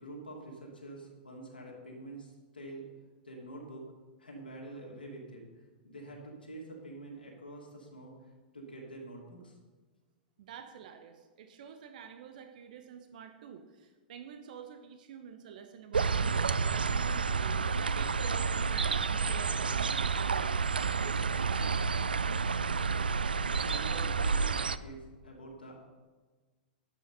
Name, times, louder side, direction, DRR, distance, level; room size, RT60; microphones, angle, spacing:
voice 1, 0.0-2.8 3.2-3.8 4.2-9.6 23.6-25.8, right 2 dB, 80° left, -2 dB, 2.9 m, -46 dB
voice 2, 10.4-17.6 17.9-21.9, right 7 dB, 55° right, 7 dB, 1.0 m, -48 dB
sound 1, 15.9-24.8, right 5 dB, 75° right, 0.4 m, -30 dB
11.0 x 7.7 x 5.5 m, 1.3 s
figure-of-eight pair, 100°, 5 cm